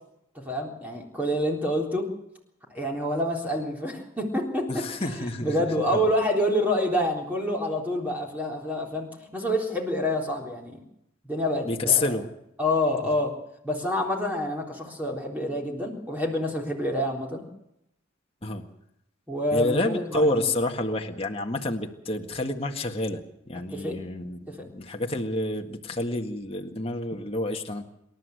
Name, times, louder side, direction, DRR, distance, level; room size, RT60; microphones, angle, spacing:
voice 1, 0.4-2.1 2.7-4.8 5.4-10.8 11.2-12.2 12.6-13.4 13.6-17.4 19.3-20.4 23.7-24.0 24.5-24.7, left 1 dB, 10° right, 0 dB, 3.7 m, -27 dB
voice 2, 4.7-5.6 5.9-6.1 11.6-12.3 18.4-18.6 19.5-23.2 23.5-27.8, left 2 dB, 25° left, 3 dB, 1.8 m, -28 dB
28.0 x 12.5 x 7.9 m, 0.80 s
head